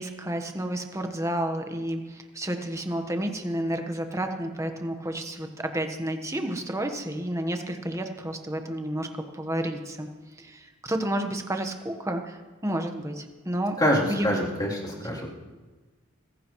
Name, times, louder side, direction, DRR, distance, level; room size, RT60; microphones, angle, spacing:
voice 1, 0.0-9.1 9.3-10.1 10.4-13.8 14.1-14.3, right 1 dB, 15° right, 5 dB, 1.2 m, -31 dB
voice 2, 13.8-15.3, equal, 20° left, -5 dB, 3.3 m, -25 dB
24.5 x 16.5 x 3.1 m, 1.2 s
head